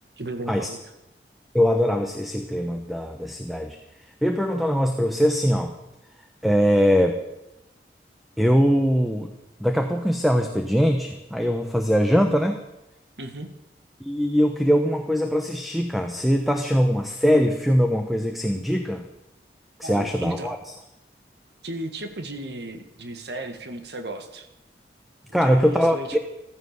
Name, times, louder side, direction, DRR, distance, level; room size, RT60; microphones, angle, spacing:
voice 1, 0.2-0.8 13.2-13.5 19.8-20.5 21.6-24.5 25.3-26.2, right 2 dB, 70° right, 7 dB, 1.8 m, -35 dB
voice 2, 1.5-3.8 4.2-5.7 6.4-7.2 8.4-9.3 9.6-12.6 14.0-19.1 19.8-20.6 25.3-26.2, equal, ahead, 5 dB, 1.0 m, -22 dB
15.0 x 14.0 x 6.7 m, 0.93 s
head